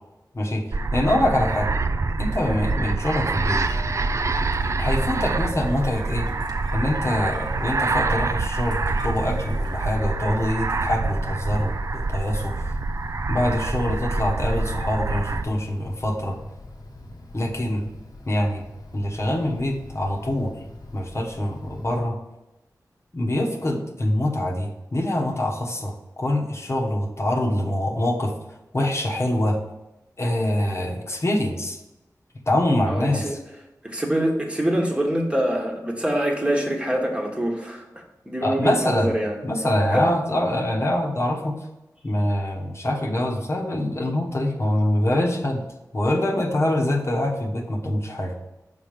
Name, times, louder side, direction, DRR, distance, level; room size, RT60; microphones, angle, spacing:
sound 1, 0.7-15.5, right 3 dB, 45° right, 0.4 m, -26 dB
voice 1, 0.9-1.7 2.2-3.7 4.8-6.3 6.7-12.6 13.3-16.4 17.3-17.9 18.3-18.6 18.9-20.5 20.9-22.2 23.1-28.3 28.7-29.6 30.2-31.8 32.5-33.4 38.4-39.1 39.4-41.6 42.0-45.6 45.9-48.3, left 1 dB, 40° left, 0 dB, 1.1 m, -24 dB
sound 2, 3.2-9.9, right 2 dB, 75° right, 1.0 m, -45 dB
Wind, 3.6-22.0, left 1 dB, 75° left, 1.1 m, -43 dB
voice 2, 32.9-33.4 33.8-39.4 39.9-40.0, right 1 dB, 15° right, 0 dB, 1.2 m, -25 dB
5.7 x 4.2 x 5.0 m, 1.0 s
wide cardioid pair, 70°, 7 cm